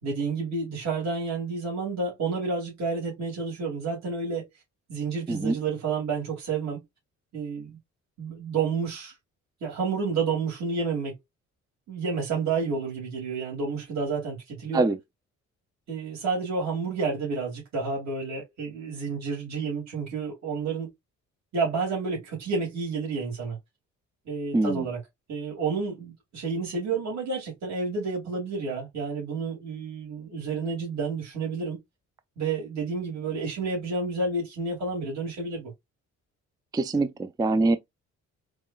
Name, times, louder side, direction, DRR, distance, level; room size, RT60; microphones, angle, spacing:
voice 1, 0.0-4.5 4.9-6.8 7.3-7.8 8.2-9.1 9.6-11.2 11.9-14.8 15.9-20.9 21.5-23.6 24.3-25.0 25.3-31.8 32.4-35.7, right 4 dB, 60° right, 2.6 m, -30 dB
voice 2, 24.5-24.9 36.7-37.8, right 3 dB, 15° right, 0.4 m, -24 dB
4.7 x 2.8 x 2.3 m
cardioid pair, 90°, 30 cm